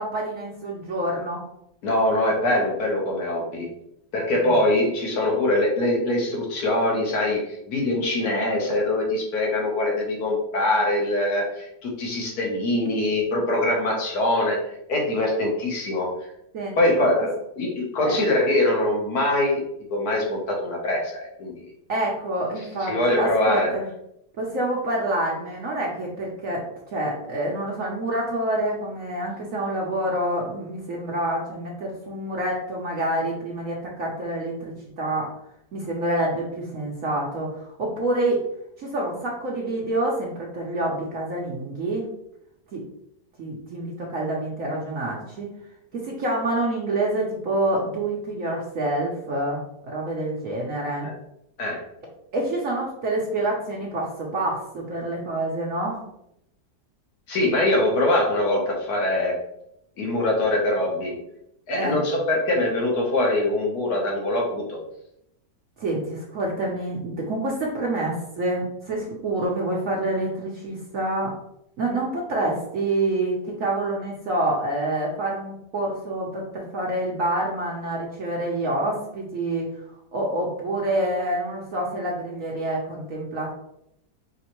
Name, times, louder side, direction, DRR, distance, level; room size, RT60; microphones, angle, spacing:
voice 1, 0.0-1.4 4.3-4.5 16.5-17.1 18.0-18.2 21.9-23.8 24.4-26.6 26.9-35.3 35.7-38.4 38.8-42.1 42.7-42.8 43.4-45.5 45.9-51.1 52.3-56.0 61.7-62.0 65.8-71.3 71.8-79.7 80.1-83.5, right 1 dB, 60° right, -3 dB, 1.0 m, -27 dB
voice 2, 1.8-3.7 4.1-14.6 14.9-16.1 16.8-19.6 19.9-21.7 22.6-23.7 51.0-51.1 51.6-51.8 57.3-59.4 60.0-61.2 61.7-64.8, left 1 dB, 60° left, 0 dB, 1.6 m, -23 dB
5.1 x 3.2 x 3.0 m, 0.79 s
omnidirectional pair, 1.9 m